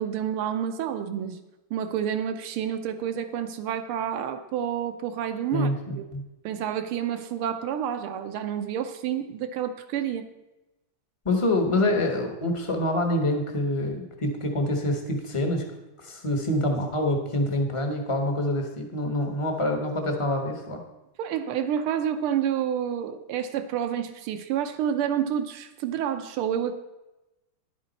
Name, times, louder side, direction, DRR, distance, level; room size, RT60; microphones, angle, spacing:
voice 1, 0.0-1.4 1.7-6.0 6.5-10.3 21.2-26.7, right 9 dB, 80° right, 8 dB, 1.6 m, -29 dB
voice 2, 5.5-6.2 11.2-15.6 16.0-20.8, left 1 dB, 25° left, 3 dB, 0.6 m, -26 dB
10.5 x 8.7 x 4.1 m, 1.0 s
omnidirectional pair, 2.4 m